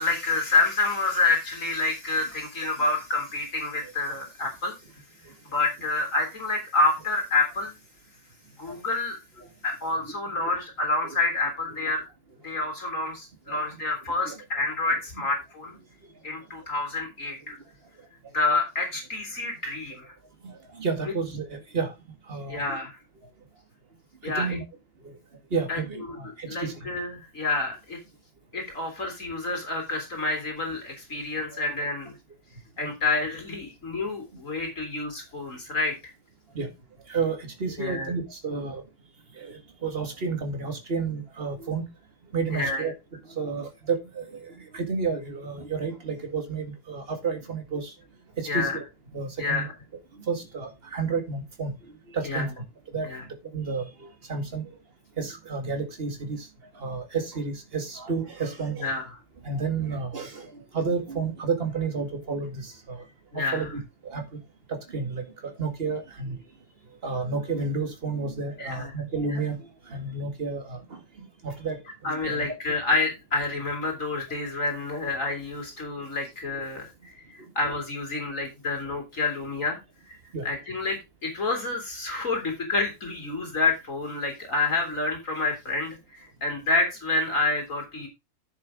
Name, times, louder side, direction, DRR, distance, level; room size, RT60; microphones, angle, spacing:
voice 1, 0.0-4.7 5.2-7.7 8.6-9.2 9.6-12.0 12.4-15.7 16.2-17.6 18.3-20.1 21.0-21.1 22.5-23.0 24.2-24.6 25.7-28.0 28.5-32.2 32.8-36.1 37.8-38.1 42.5-42.9 48.4-48.8 49.4-49.7 52.2-52.5 53.0-53.2 58.8-59.1 63.3-63.7 68.6-68.9 69.3-69.4 72.0-79.8 80.1-80.2 80.4-88.1, left 3 dB, 45° left, 3 dB, 3.1 m, -28 dB
voice 2, 20.4-21.9 22.3-22.8 24.2-24.6 25.0-25.1 25.5-26.7 31.5-31.6 32.8-32.9 36.5-36.7 37.1-38.8 39.4-41.9 42.3-42.9 43.3-47.9 48.4-48.8 49.1-49.7 50.3-51.7 52.1-53.1 53.5-54.7 55.2-56.5 56.8-58.9 59.4-63.0 63.3-64.4 64.7-66.4 67.0-69.6 69.9-72.5 80.3-80.5, right 4 dB, 35° right, 5 dB, 2.1 m, -31 dB
10.5 x 7.1 x 3.7 m, 0.23 s
omnidirectional pair, 1.9 m